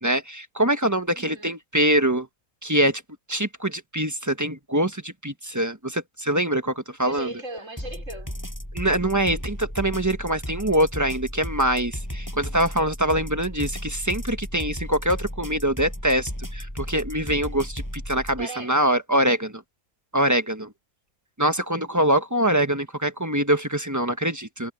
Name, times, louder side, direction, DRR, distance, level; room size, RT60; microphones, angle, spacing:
voice 1, 0.0-2.3 2.6-3.0 3.3-7.3 8.7-19.6 20.1-20.7 21.4-24.7, right 1 dB, 15° right, 1.3 m, -24 dB
voice 2, 1.1-1.6 7.0-8.5 18.4-18.9, right 2 dB, 60° right, 5.8 m, -38 dB
sound 1, 7.8-18.4, equal, 15° left, 7.7 m, -34 dB
omnidirectional pair, 1.5 m